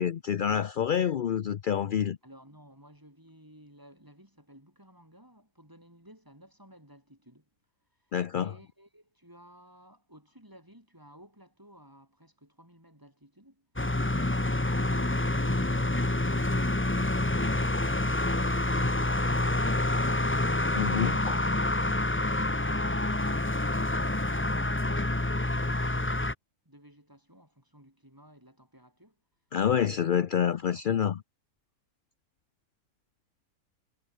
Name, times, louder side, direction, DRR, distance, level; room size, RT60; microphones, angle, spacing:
voice 1, 0.0-2.2 8.1-8.5 20.7-21.4 29.5-31.2, left 8 dB, 60° left, 0.5 m, -27 dB
voice 2, 2.2-7.4 8.0-13.7 26.6-29.2 29.9-30.1 30.5-30.6, equal, 15° right, 6.2 m, -56 dB
sound 1, 13.8-26.3, left 2 dB, 10° left, 0.8 m, -27 dB
omnidirectional pair, 1.6 m